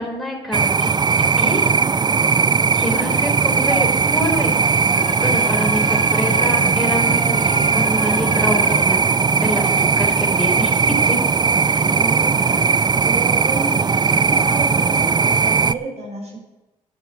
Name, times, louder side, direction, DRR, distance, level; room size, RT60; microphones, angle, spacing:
voice 1, 0.0-1.7 2.7-4.6 5.2-9.0 9.4-10.8 11.1-11.2 11.7-12.0, equal, ahead, 0 dB, 3.9 m, -26 dB
sound 1, 0.5-15.7, right 5 dB, 30° right, 0.5 m, -18 dB
sound 2, 3.1-8.9, left 7 dB, 60° left, 0.9 m, -34 dB
voice 2, 12.0-12.7 12.9-13.7 14.3-16.4, right 3 dB, 50° right, -4 dB, 5.5 m, -30 dB
10.5 x 7.3 x 8.1 m, 1.0 s
supercardioid pair, 60°, 15 cm